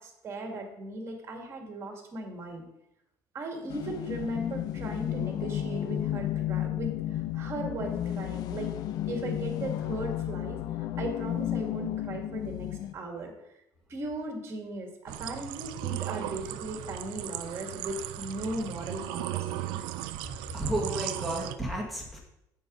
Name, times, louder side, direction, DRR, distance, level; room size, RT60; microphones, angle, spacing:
voice 1, 0.0-2.6 3.3-8.7 9.1-13.3 13.9-19.8, right 1 dB, 35° right, 2 dB, 2.0 m, -37 dB
sound 1, 3.7-12.9, left 12 dB, 55° left, 0.4 m, -33 dB
sound 2, 15.1-21.6, right 14 dB, 85° right, 0.5 m, -36 dB
voice 2, 20.5-22.2, right 1 dB, ahead, -3 dB, 2.0 m, -32 dB
8.1 x 7.1 x 3.8 m, 0.82 s
cardioid pair, 140°, 8 cm